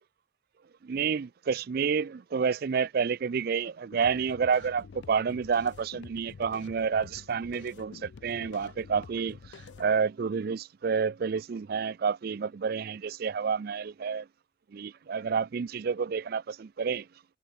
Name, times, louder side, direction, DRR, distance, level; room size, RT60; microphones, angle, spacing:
voice 1, 0.8-14.3 14.7-17.1, right 6 dB, 50° right, 0.4 m, -29 dB
sound 1, 3.9-9.9, left 5 dB, 60° left, 0.4 m, -48 dB
head